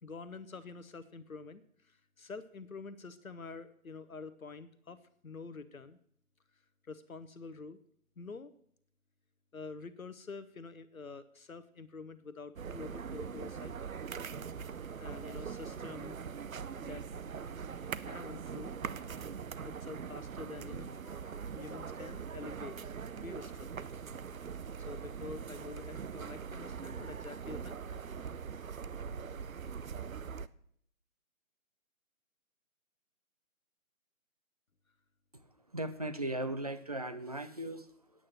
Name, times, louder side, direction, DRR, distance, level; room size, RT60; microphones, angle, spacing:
voice 1, 0.0-6.0 6.9-7.8 8.2-8.5 9.5-13.8 15.0-16.2 16.8-17.0 18.0-18.7 19.6-22.8 23.1-23.9 24.8-28.0, left 4 dB, 70° left, 13 dB, 1.0 m, -47 dB
sound 1, 12.6-30.5, right 6 dB, 70° right, 0.7 m, -42 dB
voice 2, 35.3-38.3, right 1 dB, 30° right, 9 dB, 0.6 m, -38 dB
8.7 x 8.6 x 7.6 m, 0.67 s
figure-of-eight pair, 155°, 43 cm